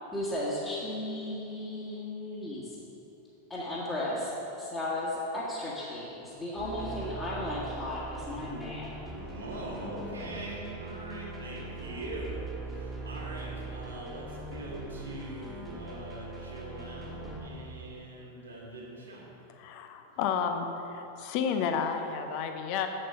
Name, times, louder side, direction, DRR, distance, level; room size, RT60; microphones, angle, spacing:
voice 1, 0.1-2.8 3.5-8.9, left 1 dB, 15° left, -7 dB, 1.6 m, -35 dB
sound 1, 6.6-17.5, right 2 dB, 5° right, 1.6 m, -41 dB
voice 2, 9.0-12.4 12.7-19.2, right 1 dB, 75° right, -4 dB, 2.1 m, -42 dB
voice 3, 19.5-22.9, left 7 dB, 45° left, 6 dB, 0.7 m, -31 dB
7.9 x 7.6 x 5.4 m, 3.0 s
figure-of-eight pair, 90°, 0 cm